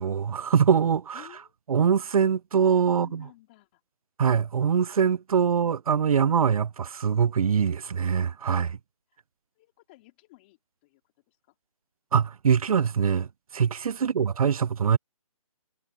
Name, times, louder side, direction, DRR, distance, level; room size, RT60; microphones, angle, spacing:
voice 1, 0.0-1.2 1.7-3.2 4.2-8.8 12.1-15.0, right 7 dB, 85° right, 0.4 m, -23 dB
voice 2, 1.1-1.5 2.9-3.8 9.5-11.6 14.0-14.2, left 21 dB, 15° left, 2.9 m, -54 dB
hypercardioid pair, 170°, 18 cm